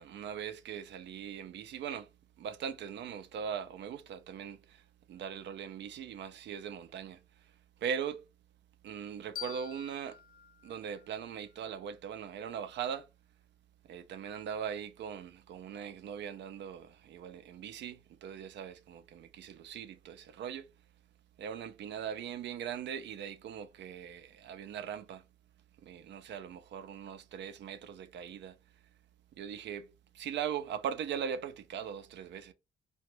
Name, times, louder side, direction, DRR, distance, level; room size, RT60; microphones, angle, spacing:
voice 1, 0.0-2.1 2.4-4.8 5.1-7.2 7.8-8.2 8.8-10.2 10.6-13.1 13.9-20.7 21.4-25.2 25.8-28.6 29.4-29.9 30.1-32.5, right 8 dB, 65° right, 0.4 m, -40 dB
sound 1, 9.3-12.1, left 10 dB, 45° left, 0.4 m, -48 dB
2.9 x 2.2 x 3.1 m
cardioid pair, 90°, 20 cm